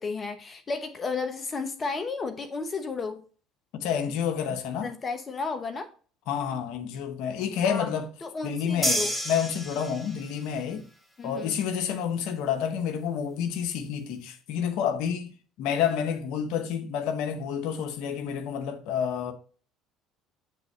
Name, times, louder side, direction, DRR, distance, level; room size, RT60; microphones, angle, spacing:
voice 1, 0.0-3.2 4.5-5.9 7.6-7.9 8.2-9.1 11.2-11.6, left 4 dB, 35° left, 0.9 m, -33 dB
voice 2, 3.7-4.9 6.3-8.1 8.4-10.9 11.2-15.3 15.6-19.3, left 8 dB, 70° left, 0.9 m, -29 dB
sound 1, 8.8-10.4, equal, 5° left, 1.8 m, -29 dB
8.1 x 3.6 x 4.2 m
hypercardioid pair, 70°, 0 cm